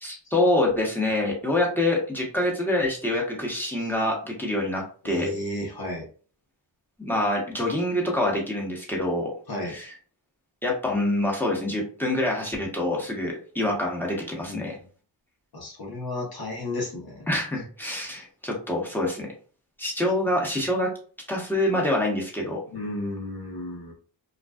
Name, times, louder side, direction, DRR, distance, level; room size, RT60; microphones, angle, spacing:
voice 1, 0.0-5.3 7.0-9.3 9.6-9.9 10.6-14.8 17.3-19.3 19.8-20.9 21.3-22.6, left 1 dB, 5° left, -2 dB, 1.1 m, -26 dB
voice 2, 5.0-6.1 9.5-9.7 14.5-14.7 15.5-17.3 22.7-23.9, left 1 dB, 50° left, -2 dB, 0.9 m, -33 dB
2.4 x 2.3 x 2.3 m, 0.41 s
cardioid pair, 55°, 49 cm